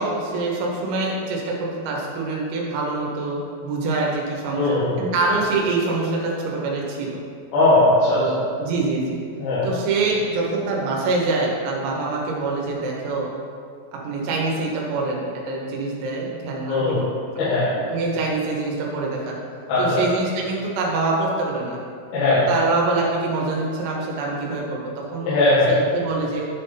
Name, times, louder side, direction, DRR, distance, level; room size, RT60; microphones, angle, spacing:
voice 1, 0.0-4.7 5.0-7.2 8.2-9.2 9.6-13.3 13.9-17.1 17.4-17.5 17.9-19.4 19.8-21.8 22.5-25.3 25.7-26.4, right 3 dB, 90° right, -2 dB, 3.9 m, -25 dB
voice 2, 4.5-5.0 7.5-8.2 9.4-9.7 16.7-17.0 17.3-17.7 19.7-20.0 22.1-22.5 25.2-25.7, left 2 dB, 85° left, -12 dB, 4.2 m, -19 dB
11.0 x 4.1 x 3.9 m, 2.3 s
omnidirectional pair, 5.9 m